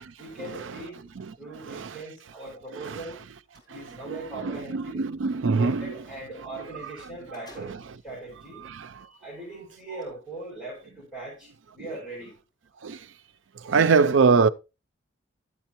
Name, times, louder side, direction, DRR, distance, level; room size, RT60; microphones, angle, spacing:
voice 1, 0.2-1.1 1.4-3.2 3.7-5.0 5.6-7.7 8.0-8.7 9.0-12.4, right 2 dB, 5° left, 6.9 m, -40 dB
sound 1, 2.9-3.7 6.6-6.7 7.0-8.1 8.8-8.9 9.8-10.0, left 1 dB, 20° left, 4.1 m, -54 dB
voice 2, 4.4-5.9 7.6-7.7 8.8-8.9 12.8-13.0 13.6-14.5, right 5 dB, 75° right, 0.5 m, -22 dB
12.5 x 8.3 x 3.0 m
head